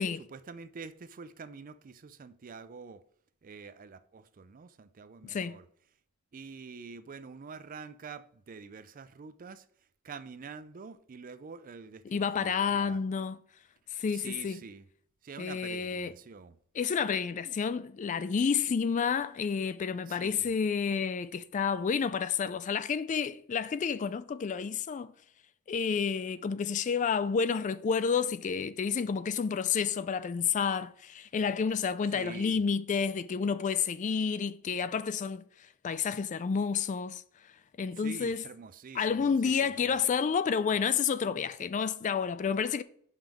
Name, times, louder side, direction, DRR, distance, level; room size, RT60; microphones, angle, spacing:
voice 1, 0.3-3.0 3.4-5.7 6.3-9.6 10.0-13.0 14.1-14.9 15.2-16.6 20.1-20.5 32.1-32.6 38.0-40.0, right 5 dB, 40° right, 0.4 m, -46 dB
voice 2, 5.2-5.6 12.1-13.4 13.9-14.6 15.4-16.1 16.7-25.1 25.7-35.4 35.8-37.2 37.8-38.4 38.9-42.8, left 6 dB, 35° left, 0.3 m, -30 dB
5.6 x 5.2 x 6.0 m
head